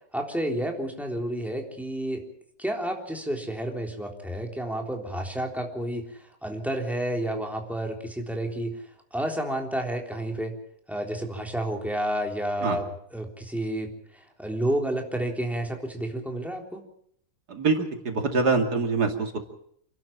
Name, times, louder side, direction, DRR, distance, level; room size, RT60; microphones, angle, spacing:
voice 1, 0.1-2.2 2.6-8.7 9.1-10.5 10.9-16.8, right 1 dB, ahead, 1 dB, 3.6 m, -30 dB
voice 2, 17.5-19.4, right 4 dB, 85° right, 4 dB, 3.0 m, -24 dB
28.5 x 12.0 x 8.9 m, 0.69 s
omnidirectional pair, 1.7 m